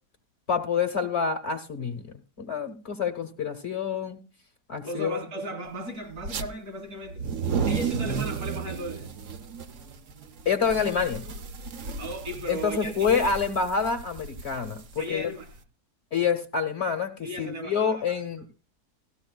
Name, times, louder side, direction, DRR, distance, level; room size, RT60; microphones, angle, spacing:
voice 1, 0.5-4.2 4.7-5.2 10.4-11.3 12.5-15.3 16.1-18.5, left 6 dB, 45° left, 1.2 m, -27 dB
voice 2, 4.8-7.3 7.7-9.1 12.0-13.4 15.0-15.5 17.2-18.0, right 1 dB, 75° right, 3.8 m, -36 dB
sound 1, 6.2-6.5 7.0-15.6, right 5 dB, 55° right, 1.1 m, -33 dB
17.0 x 14.0 x 2.2 m
omnidirectional pair, 1.7 m